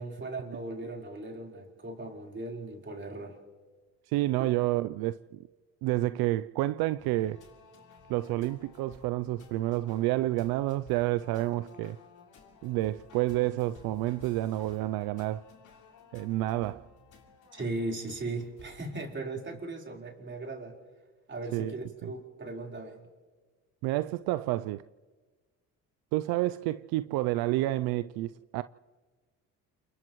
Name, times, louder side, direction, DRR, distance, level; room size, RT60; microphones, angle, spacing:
voice 1, 0.0-3.4 4.4-4.5 17.5-20.7 21.3-23.0, right 2 dB, 30° right, 4.3 m, -38 dB
voice 2, 4.1-5.4 5.8-7.4 8.1-12.0 12.6-15.4 16.1-16.9 21.5-21.7 22.0-22.1 23.8-24.8 26.1-28.6, right 16 dB, 75° right, 0.5 m, -29 dB
sound 1, 7.0-18.9, left 3 dB, 60° left, 7.1 m, -55 dB
29.0 x 28.5 x 3.1 m
supercardioid pair, 75°, 37 cm